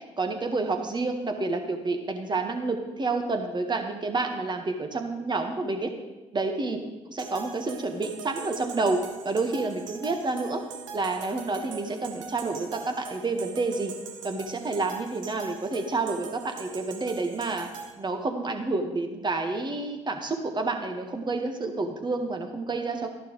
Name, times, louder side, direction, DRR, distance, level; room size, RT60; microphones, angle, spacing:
voice 1, 0.2-5.9 6.3-6.8 7.1-9.0 9.2-10.6 10.9-13.9 14.2-17.7 18.0-23.1, right 3 dB, 30° right, 4 dB, 1.6 m, -29 dB
sound 1, 7.2-17.9, right 6 dB, 85° right, 0.9 m, -42 dB
12.5 x 11.0 x 3.2 m, 1.1 s
hypercardioid pair, 55°, 16 cm